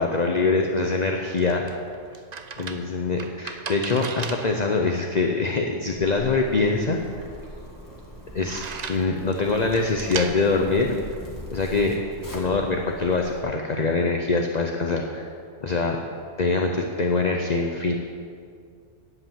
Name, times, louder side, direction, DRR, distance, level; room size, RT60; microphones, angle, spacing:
voice 1, 0.0-1.7 2.6-7.2 8.3-8.6 8.9-11.0 11.5-12.0 12.3-15.3 15.6-16.0 16.4-17.9, left 3 dB, 40° left, 2 dB, 0.8 m, -24 dB
sound 1, 0.9-11.8, right 5 dB, 45° right, 0.6 m, -38 dB
Zipper (clothing), 5.9-13.4, equal, 15° left, 1.7 m, -41 dB
10.0 x 7.9 x 7.4 m, 2.2 s
omnidirectional pair, 1.3 m